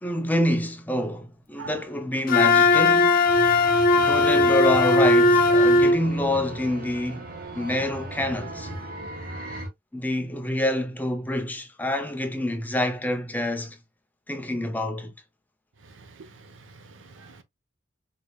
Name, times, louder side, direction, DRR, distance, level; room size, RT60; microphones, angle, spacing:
voice 1, 0.0-3.2 3.9-7.3 7.5-8.7 9.9-13.8 14.3-15.1, left 1 dB, 10° left, 0.5 m, -27 dB
Wind instrument woodwind instrument, 2.3-6.0, left 2 dB, 50° left, 0.6 m, -18 dB
sound 1, 3.2-9.7, right 1 dB, 50° right, 1.3 m, -37 dB
voice 2, 15.8-17.4, right 4 dB, 75° right, 0.7 m, -45 dB
4.8 x 2.7 x 2.2 m
head